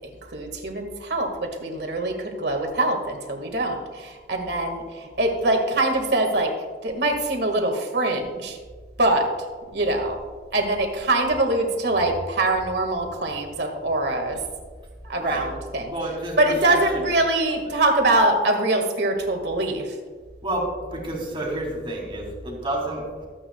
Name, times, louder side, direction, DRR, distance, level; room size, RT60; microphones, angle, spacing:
voice 1, 0.3-4.8 5.2-6.5 6.8-8.6 9.0-9.3 9.7-10.2 10.5-14.4 15.1-15.9 16.4-19.8, right 2 dB, 65° right, 4 dB, 1.8 m, -23 dB
voice 2, 15.2-15.5 15.9-17.1 20.4-23.0, right 1 dB, 30° right, -1 dB, 2.6 m, -29 dB
24.0 x 8.7 x 2.3 m, 1.5 s
head